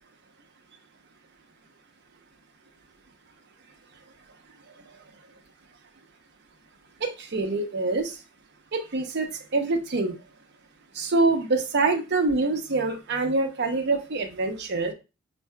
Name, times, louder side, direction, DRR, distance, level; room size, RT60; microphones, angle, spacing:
voice 1, 7.0-8.1 8.7-10.1 10.9-14.9, right 3 dB, 55° right, 5 dB, 0.6 m, -25 dB
5.5 x 2.6 x 2.2 m, 0.29 s
head